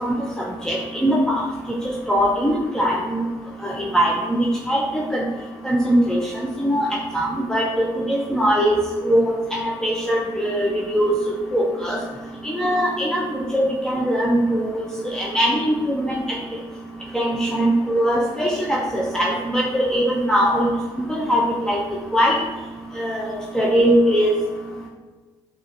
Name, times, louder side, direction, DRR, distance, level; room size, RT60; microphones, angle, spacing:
voice 1, 1.0-1.4 2.1-3.2 3.6-4.4 4.7-4.8 5.1-5.2 5.7-6.2 6.6-6.9 7.1-8.8 9.0-9.2 9.5-11.1 11.5-12.0 12.4-13.6 13.9-14.8 15.1-15.7 16.1-16.2 17.1-20.7 21.1-21.8 22.1-22.3 23.0-23.2 23.5-24.3, equal, 5° left, -4 dB, 0.5 m, -20 dB
4.4 x 2.2 x 2.9 m, 1.3 s
hypercardioid pair, 50°, 14 cm